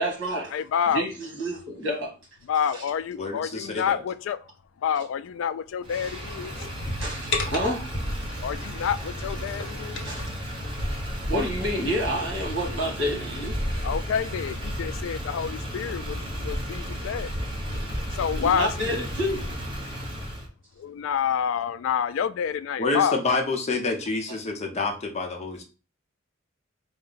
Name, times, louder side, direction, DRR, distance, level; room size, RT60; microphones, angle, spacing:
voice 1, 0.0-0.5 0.9-2.1 2.7-2.8 7.0-7.9 10.0-10.2 11.3-13.8 18.4-19.5, equal, 70° right, 1.6 m, -29 dB
voice 2, 0.5-1.1 2.5-4.5 4.8-6.5 8.4-10.1 13.8-17.3 18.1-19.0 20.8-23.2, left 8 dB, 80° left, 0.3 m, -28 dB
voice 3, 3.2-4.0 22.8-25.6, left 3 dB, 35° left, 0.8 m, -28 dB
Motor vehicle (road), 5.8-20.5, equal, 25° right, 0.9 m, -33 dB
sound 1, 6.0-8.5 9.1-10.3, left 2 dB, 65° left, 1.0 m, -33 dB
4.5 x 2.2 x 3.9 m
head